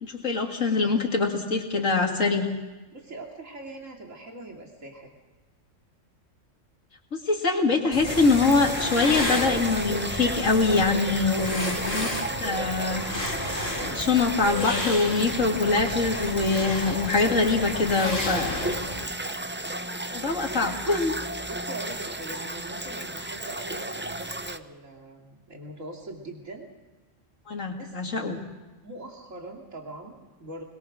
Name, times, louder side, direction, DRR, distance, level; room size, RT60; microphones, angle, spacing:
voice 1, 0.0-2.5 7.1-12.1 12.4-13.0 13.8-18.7 20.1-21.1 27.5-28.4, left 3 dB, 80° left, 2 dB, 2.5 m, -24 dB
voice 2, 2.9-5.1 11.7-12.2 15.5-15.6 18.5-19.0 20.5-20.6 21.5-26.7 27.7-28.1 28.8-30.6, right 2 dB, 85° right, 0 dB, 3.1 m, -42 dB
sound 1, 7.9-19.0, left 1 dB, 45° left, 3.0 m, -33 dB
sound 2, 8.1-24.6, right 1 dB, 15° right, 0.5 m, -33 dB
22.5 x 21.0 x 6.3 m, 1.2 s
omnidirectional pair, 1.3 m